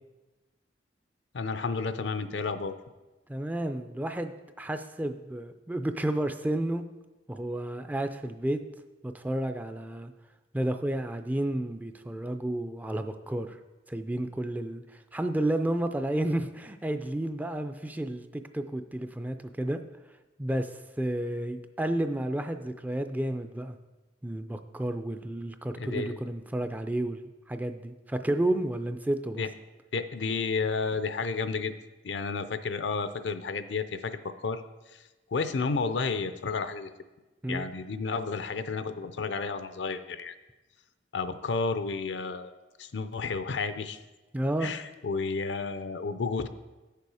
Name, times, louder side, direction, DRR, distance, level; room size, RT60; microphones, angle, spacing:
voice 1, 1.3-2.7 25.8-26.2 29.4-29.5 29.9-31.7 32.0-34.6 34.9-35.0 35.3-36.9 37.5-40.3 41.1-42.5 42.8-44.0 44.6-46.5, left 4 dB, 75° left, 11 dB, 0.5 m, -31 dB
voice 2, 3.3-6.8 7.3-8.6 9.0-10.1 10.5-13.6 13.9-19.8 20.4-23.8 24.2-29.4 37.4-37.7 44.3-44.7, right 1 dB, 10° right, 8 dB, 0.3 m, -31 dB
8.6 x 6.8 x 4.8 m, 1.1 s
head